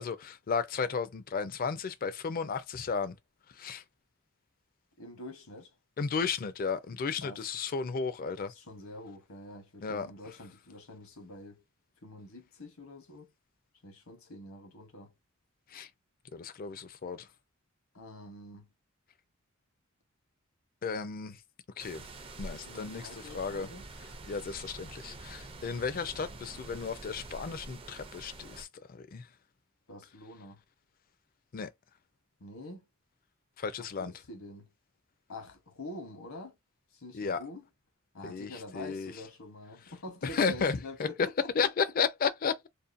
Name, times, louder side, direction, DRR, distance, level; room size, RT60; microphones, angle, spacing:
voice 1, 0.0-3.1 3.6-3.8 6.0-8.5 9.8-10.1 15.7-15.9 16.3-17.3 20.8-21.4 21.8-22.0 22.4-23.7 24.3-29.2 31.5-31.7 33.6-34.1 37.1-37.4 38.2-39.1 40.3-41.1 41.5-42.7, left 5 dB, 40° left, 0.4 m, -33 dB
voice 2, 5.0-5.8 7.2-7.5 8.5-11.6 12.0-13.3 13.8-15.1 17.9-18.7 22.5-23.9 29.9-30.6 32.4-32.8 33.8-34.7 35.3-36.6 36.9-37.7 38.1-41.7, left 2 dB, 70° left, 0.9 m, -46 dB
sound 1, 21.8-28.6, right 2 dB, 25° right, 0.4 m, -46 dB
2.6 x 2.1 x 2.4 m
head